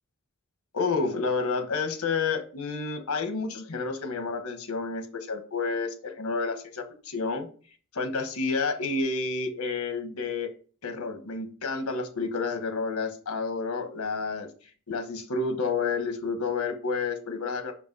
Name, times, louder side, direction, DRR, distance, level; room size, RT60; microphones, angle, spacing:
voice 1, 0.7-7.5 7.9-10.5 10.8-14.5 14.9-17.7, left 4 dB, 90° left, 7 dB, 1.2 m, -30 dB
5.8 x 5.2 x 4.6 m, 0.41 s
head